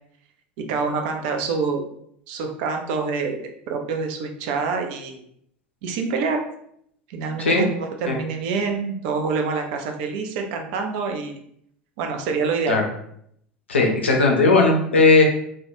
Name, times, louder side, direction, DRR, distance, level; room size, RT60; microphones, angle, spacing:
voice 1, 0.7-1.9 2.3-5.2 5.8-6.4 7.1-11.4 12.0-12.9, right 4 dB, 55° right, 4 dB, 0.5 m, -26 dB
voice 2, 13.7-15.2, left 3 dB, 75° left, 1 dB, 0.5 m, -17 dB
2.2 x 2.2 x 2.9 m, 0.69 s
figure-of-eight pair, 75°, 6 cm